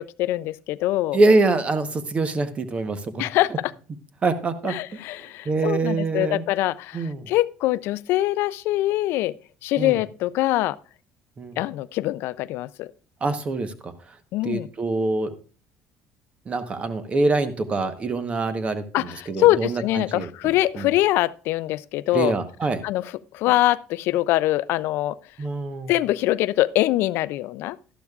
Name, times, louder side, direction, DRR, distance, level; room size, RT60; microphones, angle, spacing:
voice 1, 0.0-1.2 3.2-3.7 4.6-9.3 9.6-10.8 11.6-12.9 14.3-14.7 18.9-22.3 22.8-25.2 25.9-27.8, left 16 dB, 70° left, 0.3 m, -23 dB
voice 2, 1.1-3.2 4.2-4.7 5.4-6.4 6.9-7.3 9.8-10.0 11.4-11.6 13.2-13.9 14.4-15.3 16.5-20.9 22.1-22.8 25.4-25.9, right 3 dB, 30° right, 1.0 m, -24 dB
12.5 x 11.5 x 2.4 m
cardioid pair, 120°, 4 cm